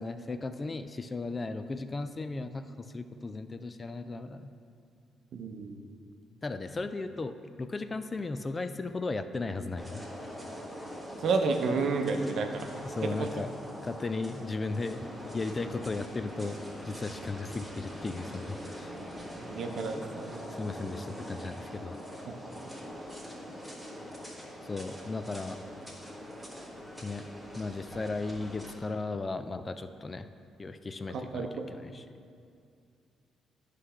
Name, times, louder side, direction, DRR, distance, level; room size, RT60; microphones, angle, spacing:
voice 1, 0.0-4.5 6.4-10.0 12.8-13.5 13.8-16.6 16.8-18.9 20.5-22.0 24.6-25.6 27.0-27.3 27.6-30.3 30.6-32.0, left 3 dB, 30° left, 10 dB, 0.3 m, -36 dB
voice 2, 5.3-5.8 11.2-12.7 13.2-13.3 19.4-20.3 31.1-31.6, right 4 dB, 65° right, 4 dB, 0.7 m, -30 dB
sound 1, 9.8-28.7, equal, 5° left, 1.5 m, -43 dB
9.7 x 3.3 x 5.6 m, 2.4 s
cardioid pair, 90°, 0 cm